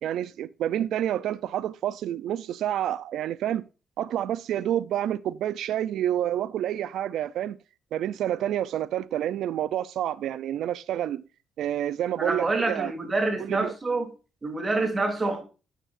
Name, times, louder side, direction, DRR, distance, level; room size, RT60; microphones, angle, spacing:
voice 1, 0.0-3.6 4.0-7.6 7.9-11.2 11.6-12.9 13.4-13.7, right 11 dB, 80° right, 0.5 m, -28 dB
voice 2, 12.2-14.1 14.4-15.4, right 3 dB, 30° right, 3.0 m, -27 dB
10.0 x 9.0 x 2.5 m
cardioid pair, 90°, 0 cm